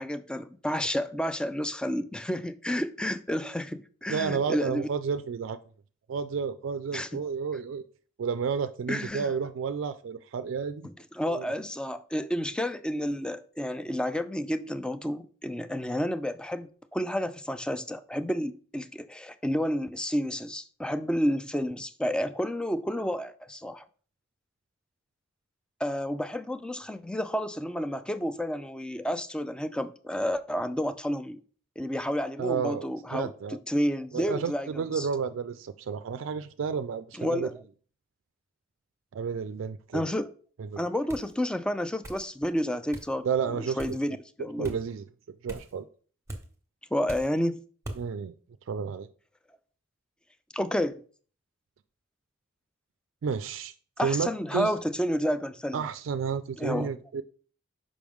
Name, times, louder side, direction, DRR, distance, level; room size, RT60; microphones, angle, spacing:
voice 1, 0.0-4.9 6.9-7.2 8.9-9.3 10.8-23.8 25.8-31.4 31.8-35.1 37.1-37.6 39.9-40.3 40.8-44.7 46.9-47.6 50.5-51.0 54.0-55.8 56.6-56.9, equal, 5° left, 0.3 m, -30 dB
voice 2, 4.1-5.6 6.1-7.8 8.2-10.9 11.2-11.5 32.4-33.6 34.1-37.5 39.1-40.1 40.6-40.9 43.2-44.0 44.6-45.9 48.0-48.3 48.7-49.1 53.2-53.7 54.0-54.7 55.7-57.2, right 6 dB, 70° right, 0.3 m, -31 dB
sound 1, 41.1-41.3 42.0-42.3 42.9-43.1 43.8-44.0 44.6-44.8 45.5-45.7 46.3-46.5 47.1-47.4 47.8-48.0, right 1 dB, 15° right, 1.1 m, -40 dB
6.2 x 5.1 x 3.5 m
head